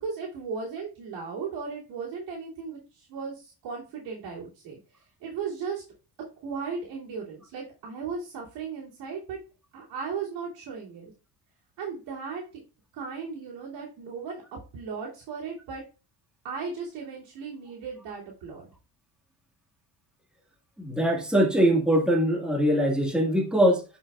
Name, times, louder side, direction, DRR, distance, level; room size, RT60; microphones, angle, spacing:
voice 1, 0.0-5.8 6.4-9.4 9.7-11.1 11.8-12.6 12.9-14.4 14.7-15.8 16.4-18.7, right 5 dB, 85° right, -5 dB, 2.8 m, -36 dB
voice 2, 20.8-23.8, equal, ahead, -1 dB, 1.7 m, -22 dB
9.6 x 5.5 x 2.4 m, 0.33 s
cardioid pair, 105°, 43 cm